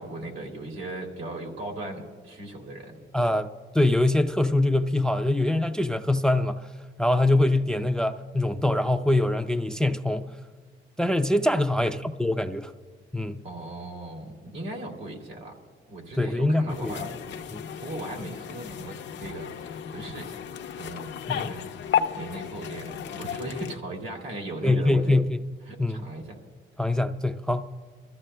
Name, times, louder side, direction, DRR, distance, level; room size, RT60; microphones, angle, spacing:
voice 1, 0.0-3.0 13.4-15.5 15.9-17.4 17.7-20.4 20.8-25.1 25.7-26.4, right 2 dB, 85° right, 2.7 m, -38 dB
voice 2, 3.1-3.5 3.7-6.7 7.0-10.3 11.0-12.7 13.1-13.4 16.2-17.0 17.5-17.6 21.3-21.5 24.6-25.4 25.8-26.0 26.8-27.7, left 1 dB, 5° left, 0.4 m, -24 dB
sound 1, 16.7-23.8, left 8 dB, 65° left, 0.6 m, -33 dB
28.0 x 14.0 x 2.2 m
cardioid pair, 90°, 20 cm